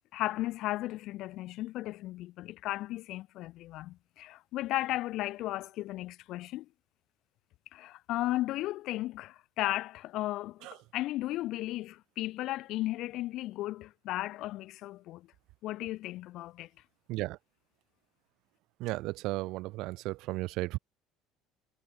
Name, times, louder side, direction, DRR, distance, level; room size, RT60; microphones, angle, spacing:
voice 1, 0.1-6.7 7.7-15.3 15.6-16.7, left 16 dB, 60° left, 1.8 m, -35 dB
voice 2, 18.8-20.8, right 20 dB, 65° right, 1.1 m, -34 dB
hypercardioid pair, 65°, 0 cm